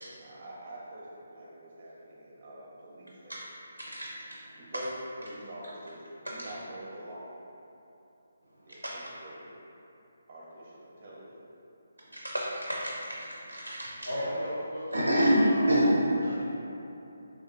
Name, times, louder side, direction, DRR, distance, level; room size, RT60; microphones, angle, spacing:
voice 1, 0.2-3.4 4.6-4.9 5.2-7.3 8.7-9.6 10.3-11.4 14.1-14.5, right 1 dB, 35° right, -5 dB, 0.7 m, -45 dB
voice 2, 12.1-14.1 14.9-16.0, equal, 85° right, -4 dB, 0.4 m, -27 dB
voice 3, 14.0-15.7 16.2-16.4, equal, 70° left, -8 dB, 0.6 m, -35 dB
3.3 x 2.9 x 2.4 m, 2.8 s
figure-of-eight pair, 145°, 0 cm